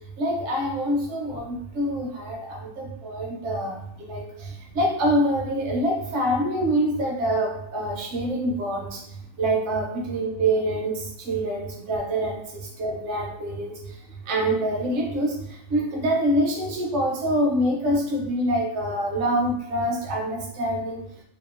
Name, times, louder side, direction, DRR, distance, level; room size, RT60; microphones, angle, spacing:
voice 1, 0.2-9.0 9.4-13.7 14.3-15.3 15.7-21.0, right 1 dB, 65° right, 0 dB, 0.8 m, -25 dB
2.8 x 2.0 x 2.4 m, 0.74 s
omnidirectional pair, 1.4 m